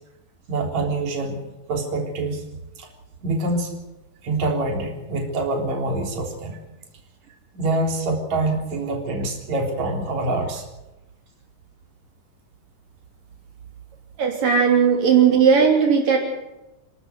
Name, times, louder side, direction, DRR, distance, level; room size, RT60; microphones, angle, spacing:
voice 1, 0.5-2.4 2.8-2.9 3.2-3.8 4.2-6.5 7.5-10.6 14.4-14.6 14.9-15.0, right 2 dB, 55° right, 1 dB, 4.9 m, -25 dB
voice 2, 14.2-16.2, right 6 dB, 80° right, 1 dB, 4.8 m, -17 dB
30.0 x 13.0 x 8.1 m, 0.98 s
omnidirectional pair, 3.8 m